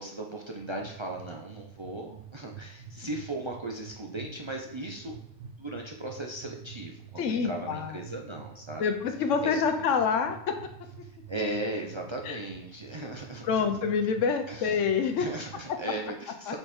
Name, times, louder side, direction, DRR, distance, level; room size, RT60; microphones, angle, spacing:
voice 1, 0.0-5.2 5.6-8.9 9.4-9.6 11.3-13.6 14.5-14.8 15.2-16.6, right 1 dB, 35° right, 0 dB, 0.4 m, -37 dB
sound 1, 0.6-15.7, right 6 dB, 80° right, 1.0 m, -48 dB
voice 2, 7.2-8.0 8.8-10.6 12.2-12.4 13.4-15.3 15.7-15.8 16.5-16.6, left 6 dB, 85° left, 7 dB, 1.0 m, -27 dB
5.3 x 4.1 x 4.3 m, 0.79 s
omnidirectional pair, 1.2 m